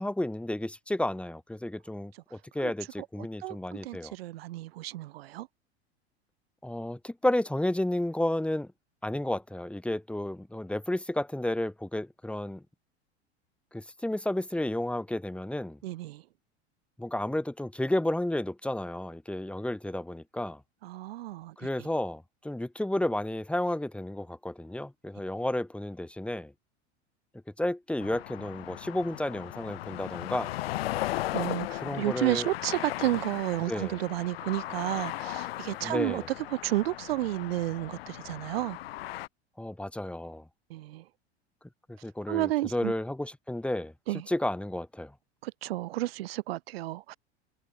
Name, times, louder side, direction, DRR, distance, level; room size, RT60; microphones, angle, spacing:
voice 1, 0.0-4.1 6.6-8.7 9.0-12.6 13.7-15.8 17.0-20.6 21.6-26.5 27.6-30.5 31.8-32.5 33.7-34.0 35.8-36.3 39.6-40.5 41.9-43.9 44.3-45.1, left 1 dB, 5° left, 2.9 m, -32 dB
voice 2, 3.4-5.5 15.8-16.2 20.8-21.9 31.3-36.2 36.5-38.8 40.7-41.0 42.3-42.9 44.1-44.2 45.4-47.2, right 16 dB, 60° right, 7.8 m, -32 dB
sound 1, 28.0-39.3, left 15 dB, 60° left, 7.6 m, -37 dB
figure-of-eight pair, 80°, 34 cm